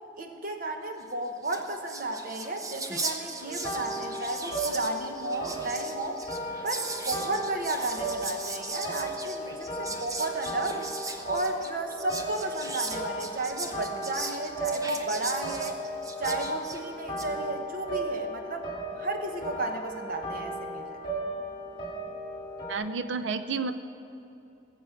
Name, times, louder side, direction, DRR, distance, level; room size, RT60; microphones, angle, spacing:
voice 1, 0.2-6.2 6.6-10.9 11.2-15.8 16.2-20.9, right 2 dB, 45° right, 4 dB, 1.1 m, -33 dB
Whispering, 1.1-1.2 1.4-17.3, right 3 dB, 20° right, 0.7 m, -38 dB
sound 1, 3.4-22.7, right 1 dB, 25° left, 2.5 m, -36 dB
voice 2, 22.7-23.8, right 4 dB, 75° right, 10 dB, 0.6 m, -30 dB
19.5 x 7.4 x 5.9 m, 2.8 s
head